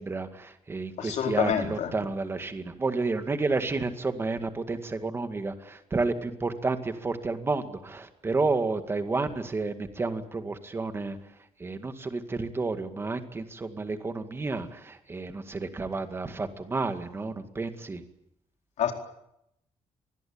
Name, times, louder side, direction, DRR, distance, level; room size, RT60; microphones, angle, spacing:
voice 1, 0.0-11.2 11.6-18.0, right 3 dB, 20° right, 8 dB, 2.1 m, -31 dB
voice 2, 1.0-1.9 18.8-18.9, left 8 dB, 75° left, 4 dB, 4.4 m, -27 dB
25.5 x 20.5 x 8.8 m, 0.78 s
cardioid pair, 175°, 12 cm